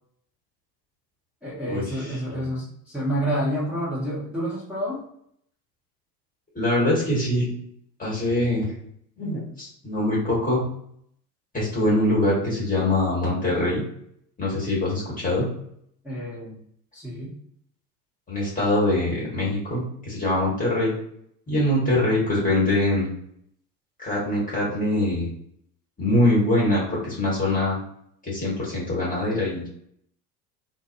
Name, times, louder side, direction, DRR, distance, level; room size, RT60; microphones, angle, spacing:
voice 1, 1.4-5.0 16.0-16.6 16.9-17.3, equal, 5° right, -8 dB, 0.9 m, -29 dB
voice 2, 6.5-7.5 8.0-8.7 9.2-10.6 11.5-13.8 14.4-15.5 18.3-20.9 21.5-23.1 24.0-25.3 26.0-27.8 28.2-29.7, left 1 dB, 15° left, -6 dB, 1.2 m, -23 dB
2.5 x 2.1 x 2.4 m, 0.69 s
figure-of-eight pair, 70°, 49 cm